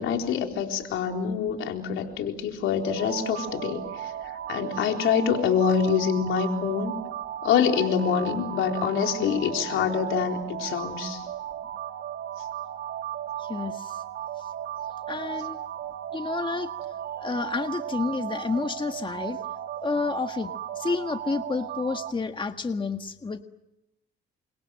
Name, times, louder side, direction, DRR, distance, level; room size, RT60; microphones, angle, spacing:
voice 1, 0.0-4.1 4.5-6.9 7.4-11.2, left 7 dB, 85° left, 3 dB, 4.1 m, -25 dB
sound 1, 2.8-22.1, right 11 dB, 80° right, 1.8 m, -35 dB
voice 2, 13.4-14.0 14.4-14.5 15.1-15.6 16.1-16.7 17.2-19.4 19.8-23.4, left 4 dB, 25° left, 7 dB, 1.6 m, -30 dB
29.0 x 25.5 x 7.7 m, 0.89 s
cardioid pair, 90°, 20 cm